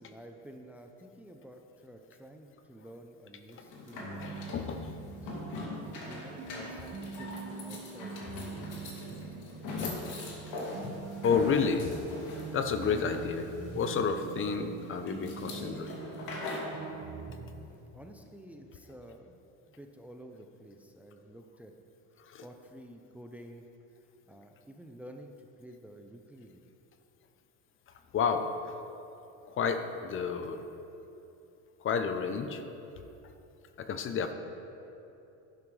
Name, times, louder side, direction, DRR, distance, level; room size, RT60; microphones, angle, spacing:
voice 1, 0.0-4.5 5.2-9.3 17.6-21.7 22.4-23.7 24.3-26.6, right 1 dB, 5° right, 4 dB, 0.6 m, -51 dB
sound 1, 3.5-16.8, left 3 dB, 65° left, 2.7 m, -42 dB
sound 2, 4.0-17.6, right 5 dB, 40° right, 1.5 m, -44 dB
voice 2, 4.2-5.0 5.5-5.8 9.8-10.0 11.2-11.9 12.5-15.9 22.2-22.4 27.9-28.8 29.5-30.6 31.8-32.6 33.8-34.3, left 5 dB, 35° left, 8 dB, 0.7 m, -31 dB
11.0 x 11.0 x 3.3 m, 2.9 s
supercardioid pair, 115°, 34 cm